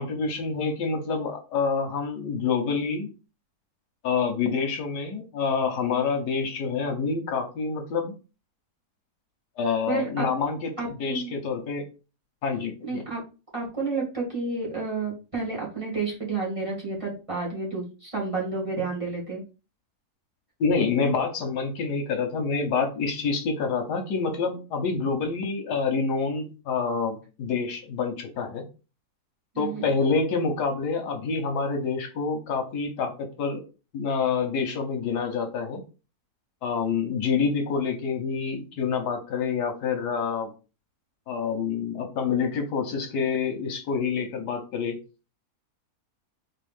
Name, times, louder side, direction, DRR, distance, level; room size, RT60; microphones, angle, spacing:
voice 1, 0.0-3.1 4.0-8.1 9.6-11.8 12.4-13.0 20.6-28.6 29.6-33.6 33.9-35.8 36.6-40.5 41.3-45.0, left 5 dB, 85° left, 5 dB, 1.6 m, -27 dB
voice 2, 9.9-10.3 10.8-11.3 12.8-13.2 13.5-19.4 29.5-29.9, right 3 dB, 20° right, -5 dB, 1.9 m, -30 dB
4.1 x 3.7 x 3.5 m, 0.32 s
omnidirectional pair, 1.7 m